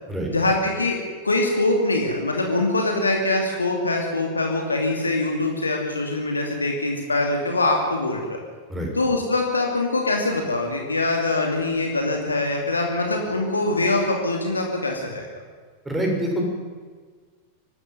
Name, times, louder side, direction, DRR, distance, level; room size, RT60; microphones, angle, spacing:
voice 1, 0.3-1.0 1.2-8.4 9.0-15.3, left 2 dB, 80° left, 2 dB, 2.6 m, -23 dB
voice 2, 15.8-16.4, right 1 dB, 10° right, 0 dB, 6.4 m, -25 dB
25.0 x 12.5 x 9.5 m, 1.5 s
figure-of-eight pair, 90°, 0 cm